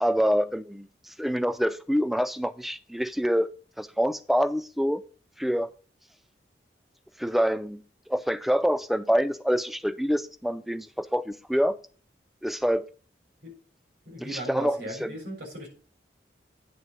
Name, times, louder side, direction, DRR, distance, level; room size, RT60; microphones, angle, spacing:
voice 1, 0.0-3.5 3.8-5.0 5.4-5.7 7.2-7.8 8.1-11.8 12.4-12.9 14.2-15.1, equal, ahead, 0.3 m, -26 dB
voice 2, 14.1-15.7, equal, 85° right, 3.8 m, -38 dB
9.4 x 3.6 x 6.7 m
head